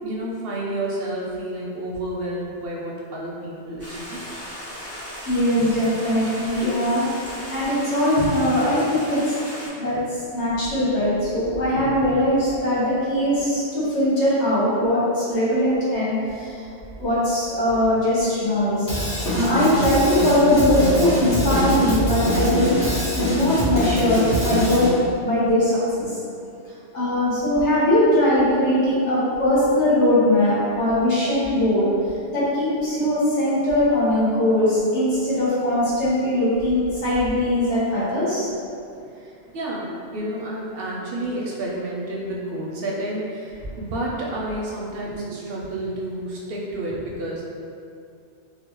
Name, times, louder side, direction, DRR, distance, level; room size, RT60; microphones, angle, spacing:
voice 1, 0.0-4.2 39.2-39.9 40.1-47.4, right 1 dB, 65° right, -4 dB, 0.7 m, -30 dB
Stream, 3.8-9.7, equal, 20° left, 0.4 m, -36 dB
voice 2, 5.2-9.2 9.8-10.0 10.3-16.5 17.0-18.9 19.3-22.8 23.1-24.9 25.2-26.1 26.9-31.9 32.3-38.5, left 1 dB, 75° left, -10 dB, 1.5 m, -20 dB
Drum kit / Drum, 18.9-24.9, equal, 50° left, 1.2 m, -23 dB
4.0 x 2.1 x 3.1 m, 2.4 s
omnidirectional pair, 1.2 m